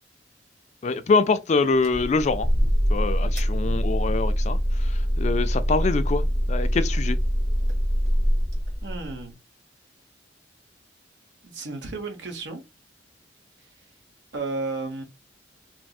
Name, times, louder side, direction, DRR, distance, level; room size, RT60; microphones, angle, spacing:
voice 1, 0.8-2.5 2.9-7.2, left 4 dB, 40° left, 0.3 m, -25 dB
sound 1, 1.8-9.2, equal, 40° right, 1.3 m, -24 dB
voice 2, 8.8-9.4 11.4-12.6 14.3-15.0, right 3 dB, 75° right, 1.1 m, -33 dB
4.1 x 2.0 x 2.4 m
head